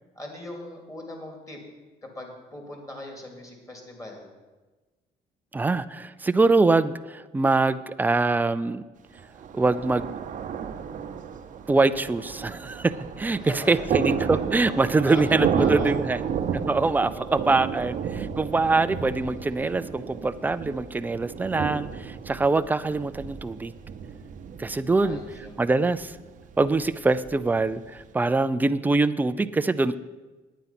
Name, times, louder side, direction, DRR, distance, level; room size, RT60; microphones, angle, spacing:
voice 1, 0.1-1.6 2.0-4.2 13.4-13.9 14.2-14.4 14.8-15.2 15.6-16.0 17.1-17.5 24.9-25.8, left 1 dB, 20° left, 2 dB, 2.8 m, -40 dB
voice 2, 5.5-8.8 9.5-10.1 11.7-16.2 16.7-23.7 24.6-25.2 25.6-26.1 26.6-30.0, right 3 dB, 10° right, 12 dB, 0.4 m, -24 dB
Thunder, 9.1-28.1, right 7 dB, 50° right, 0.8 m, -32 dB
9.4 x 9.2 x 5.8 m, 1.2 s
cardioid pair, 110°, 17 cm